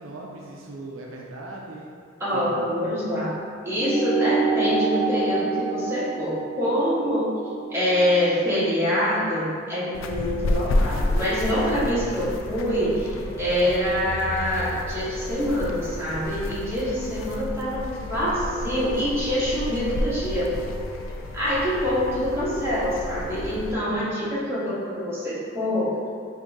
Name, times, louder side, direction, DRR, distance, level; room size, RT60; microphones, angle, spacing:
voice 1, 0.0-1.9 2.3-2.7 17.1-17.6 23.9-24.3, right 2 dB, 70° right, -1 dB, 0.5 m, -40 dB
voice 2, 2.2-3.3 3.6-7.3 7.7-20.6 21.3-26.0, equal, 15° right, -10 dB, 1.4 m, -25 dB
sound 1, 3.7-8.6, right 4 dB, 55° left, 1.4 m, -27 dB
sound 2, 9.9-23.7, left 1 dB, 70° left, 0.3 m, -31 dB
sound 3, 12.4-23.6, left 1 dB, 15° left, 1.3 m, -42 dB
5.3 x 2.7 x 3.6 m, 2.2 s
head